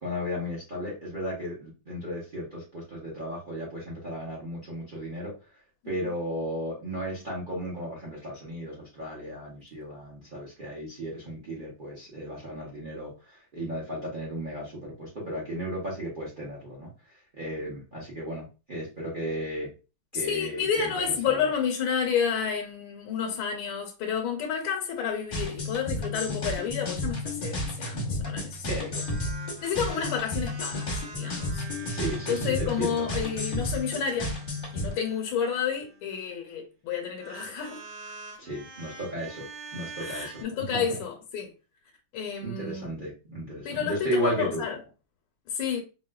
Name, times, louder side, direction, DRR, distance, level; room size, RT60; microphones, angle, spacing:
voice 1, 0.0-5.3 5.8-16.9 17.3-19.7 20.1-21.5 28.7-29.0 31.8-33.1 38.4-40.4 40.7-40.8 42.4-44.6, equal, 60° right, 0.5 m, -34 dB
voice 2, 20.2-28.7 29.6-31.6 32.3-34.3 34.7-37.8 40.0-41.5 42.1-42.9 43.6-44.8 45.5-45.8, left 7 dB, 80° left, 1.4 m, -30 dB
sound 1, 25.3-34.9, left 1 dB, 45° left, 0.6 m, -32 dB
sound 2, 28.9-36.3 37.1-40.4, right 4 dB, 80° right, 1.7 m, -46 dB
4.2 x 2.2 x 2.2 m
omnidirectional pair, 2.3 m